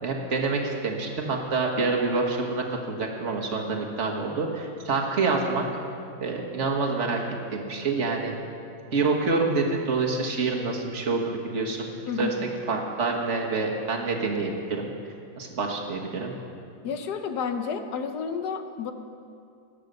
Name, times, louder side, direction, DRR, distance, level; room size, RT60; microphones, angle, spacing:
voice 1, 0.0-5.6 6.2-7.2 7.5-8.4 8.9-11.9 12.2-12.3 12.7-14.9 15.4-16.3, right 3 dB, 40° right, 0 dB, 1.6 m, -27 dB
voice 2, 12.1-12.6 16.8-18.9, left 6 dB, 65° left, 7 dB, 1.2 m, -31 dB
19.0 x 6.8 x 6.7 m, 2.5 s
omnidirectional pair, 2.1 m